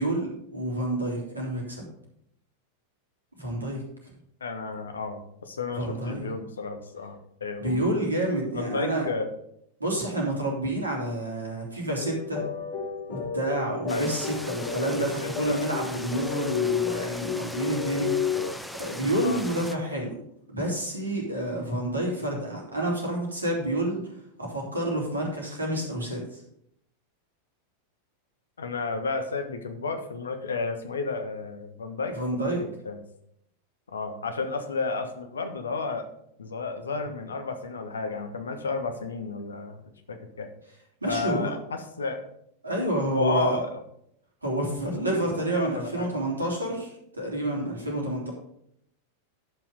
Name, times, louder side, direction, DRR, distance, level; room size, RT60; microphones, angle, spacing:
voice 1, 0.0-1.9 3.4-4.1 5.7-6.3 7.6-9.1 9.8-12.4 13.1-18.3 18.8-20.2 20.5-24.1 24.4-26.4 32.1-32.6 41.0-41.5 42.6-43.6 44.4-48.3, right 1 dB, 80° right, -2 dB, 3.3 m, -29 dB
voice 2, 4.4-7.8 8.5-9.3 13.9-14.1 14.9-15.6 19.2-19.4 28.6-33.0 33.9-36.1 36.4-39.8 40.1-40.5 41.1-42.2 43.1-43.8 45.0-45.2 45.5-46.2, left 4 dB, 70° left, 7 dB, 1.4 m, -32 dB
sound 1, 12.0-18.5, left 6 dB, 50° left, 2.7 m, -31 dB
sound 2, 13.9-19.8, left 1 dB, ahead, 0.7 m, -40 dB
11.0 x 6.0 x 5.2 m, 0.73 s
figure-of-eight pair, 90°, 0 cm